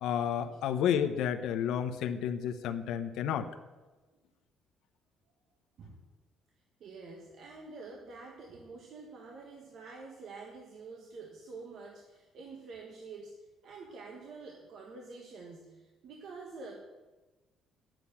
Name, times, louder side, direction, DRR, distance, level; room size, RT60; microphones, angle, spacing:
voice 1, 0.0-3.5, left 9 dB, 75° left, 7 dB, 0.9 m, -31 dB
voice 2, 6.8-16.8, right 4 dB, 50° right, 0 dB, 1.6 m, -47 dB
10.5 x 7.9 x 8.4 m, 1.2 s
cardioid pair, 165°, 0 cm